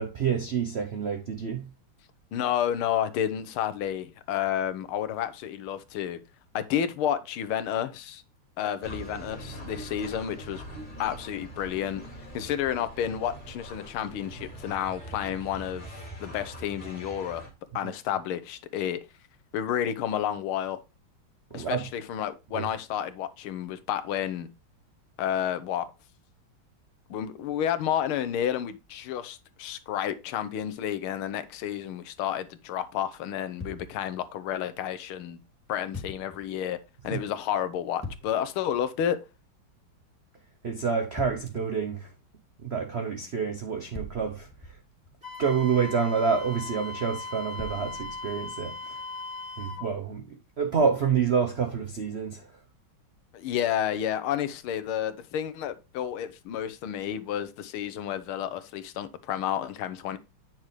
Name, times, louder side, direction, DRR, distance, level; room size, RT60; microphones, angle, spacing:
voice 1, 0.0-1.7 17.8-17.9 21.5-21.9 22.5-22.7 37.1-37.2 40.6-42.1 42.6-44.5 45.4-49.0 49.6-52.5, right 6 dB, 70° right, 0.6 m, -28 dB
voice 2, 2.3-6.2 6.5-8.2 8.6-10.6 11.0-12.0 12.3-15.9 16.2-17.4 17.7-19.0 19.5-20.8 21.5-24.5 25.2-25.9 27.1-35.4 35.7-36.8 37.0-39.2 53.3-60.2, left 10 dB, 90° left, 1.7 m, -30 dB
sound 1, 8.8-17.5, right 1 dB, 25° left, 2.3 m, -43 dB
sound 2, 33.6-34.4 35.9-36.5 38.0-38.6 41.2-41.8 43.9-45.3 47.6-48.4, left 1 dB, 5° left, 2.4 m, -42 dB
Wind instrument woodwind instrument, 45.2-49.9, left 3 dB, 20° right, 3.2 m, -38 dB
8.9 x 6.1 x 3.2 m
omnidirectional pair, 2.3 m